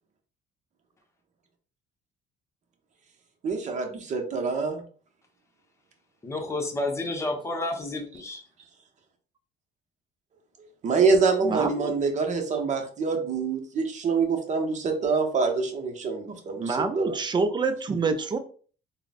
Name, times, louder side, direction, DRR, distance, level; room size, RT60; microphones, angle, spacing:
voice 1, 3.4-4.8 10.8-17.2, right 4 dB, 45° right, 4 dB, 0.8 m, -26 dB
voice 2, 6.2-8.4, left 2 dB, 15° left, 2 dB, 0.8 m, -30 dB
voice 3, 11.4-11.9 16.6-18.4, right 4 dB, 25° right, 9 dB, 0.4 m, -27 dB
3.7 x 2.1 x 2.5 m, 0.42 s
cardioid pair, 110°, 17 cm